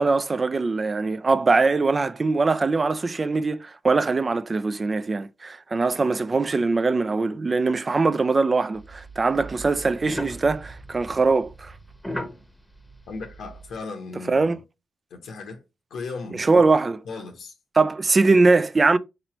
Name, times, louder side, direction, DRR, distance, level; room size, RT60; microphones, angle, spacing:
voice 1, 0.0-11.7 14.3-14.6 16.3-17.0 17.8-19.0, right 3 dB, 35° right, 0.3 m, -22 dB
sound 1, 8.7-13.8, equal, 5° left, 1.0 m, -38 dB
voice 2, 13.1-14.6 15.1-15.6 15.9-16.7 17.0-17.5, left 4 dB, 80° left, 0.8 m, -36 dB
4.0 x 3.0 x 2.9 m
cardioid pair, 65°, 0 cm